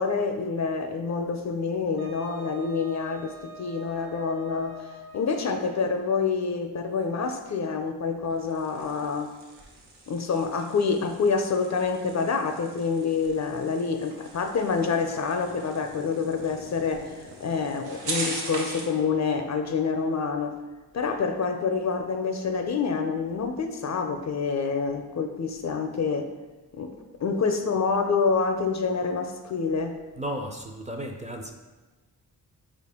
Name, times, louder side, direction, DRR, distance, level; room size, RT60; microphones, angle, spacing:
voice 1, 0.0-9.3 10.1-20.6 20.9-26.3 26.7-30.0, left 5 dB, 45° left, 6 dB, 0.4 m, -27 dB
Wind instrument woodwind instrument, 2.0-6.3, left 1 dB, 65° right, 1.4 m, -45 dB
sound 1, 8.3-19.0, right 2 dB, 85° right, 0.8 m, -40 dB
voice 2, 30.2-31.5, equal, 20° right, 3 dB, 0.4 m, -34 dB
4.8 x 2.5 x 3.5 m, 1.2 s
cardioid pair, 60°, 41 cm